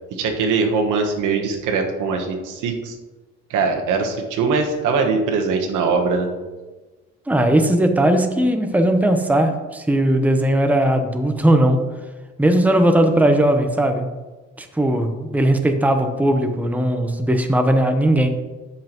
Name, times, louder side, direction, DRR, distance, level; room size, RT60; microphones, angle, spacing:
voice 1, 0.1-2.9 3.5-6.3, right 4 dB, 90° right, 2 dB, 1.2 m, -21 dB
voice 2, 7.3-11.8 12.4-14.1 14.6-18.3, right 1 dB, 5° right, 6 dB, 0.8 m, -18 dB
13.0 x 5.6 x 3.0 m, 1.2 s
cardioid pair, 90°, 30 cm